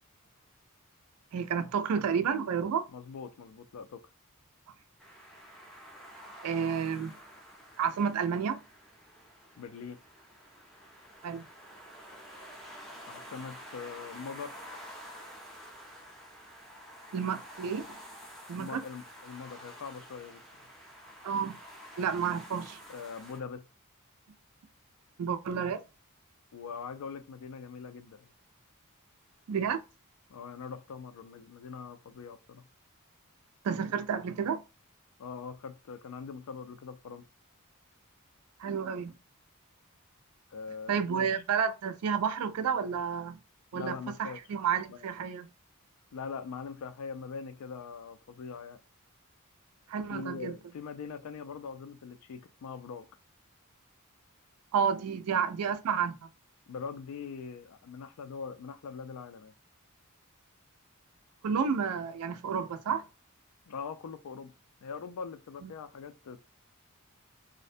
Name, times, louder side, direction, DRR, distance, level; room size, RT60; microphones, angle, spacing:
voice 1, 1.3-2.9 6.4-7.1 7.8-8.6 11.2-11.5 17.1-18.0 18.5-18.8 21.2-21.6 22.0-22.8 25.2-25.8 29.5-29.8 33.6-34.6 38.6-39.1 40.9-43.4 43.7-45.5 49.9-50.5 54.7-56.3 61.4-63.0 65.6-65.7, right 7 dB, 85° right, 0.4 m, -30 dB
voice 2, 2.9-4.0 9.6-10.0 13.1-14.6 18.5-20.4 22.9-23.6 26.5-28.3 30.3-32.6 35.2-37.2 40.5-41.4 43.7-44.4 44.9-45.1 46.1-48.8 50.1-53.1 56.7-59.5 63.7-64.5 64.8-66.4, left 5 dB, 80° left, 0.4 m, -42 dB
sound 1, 5.0-23.4, equal, ahead, 0.5 m, -49 dB
2.5 x 2.1 x 2.5 m
head